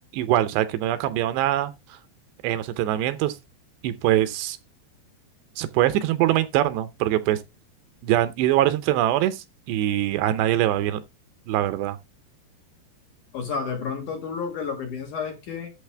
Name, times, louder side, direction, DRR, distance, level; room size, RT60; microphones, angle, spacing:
voice 1, 0.1-1.7 2.4-3.4 3.8-4.6 5.6-7.4 8.0-11.0 11.5-12.0, right 13 dB, 80° right, 2.8 m, -23 dB
voice 2, 13.3-15.7, left 5 dB, 55° left, 2.6 m, -31 dB
11.5 x 7.1 x 3.3 m
omnidirectional pair, 5.1 m